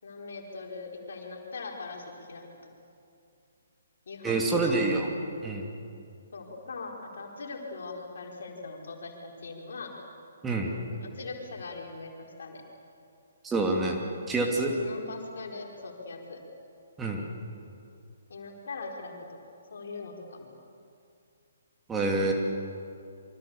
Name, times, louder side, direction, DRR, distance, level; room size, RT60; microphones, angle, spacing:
voice 1, 0.0-2.4 4.1-4.8 6.3-9.9 10.9-12.6 14.7-16.4 18.3-19.4 19.7-20.5, left 3 dB, 55° left, 0 dB, 4.8 m, -41 dB
voice 2, 4.2-5.1 5.4-5.7 10.4-10.8 13.4-14.0 14.3-14.7 17.0-17.3 21.9-22.3, right 3 dB, 10° right, 0 dB, 2.6 m, -27 dB
27.5 x 25.0 x 7.2 m, 2.5 s
figure-of-eight pair, 130°, 0 cm